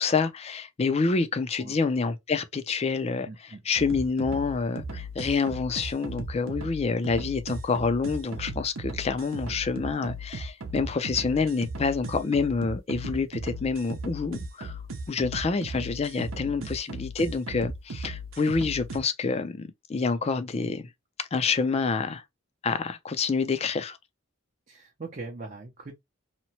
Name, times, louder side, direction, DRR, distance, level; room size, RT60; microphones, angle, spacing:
voice 1, 0.0-14.8 15.1-20.9 21.3-22.2 22.6-24.0, left 4 dB, 30° left, 0.4 m, -27 dB
voice 2, 3.3-3.6 9.3-9.4 11.1-11.2 16.4-16.7 24.7-25.9, right 3 dB, 40° right, 0.5 m, -41 dB
sound 1, 3.8-19.0, right 1 dB, 85° right, 0.7 m, -37 dB
2.9 x 2.1 x 2.8 m
head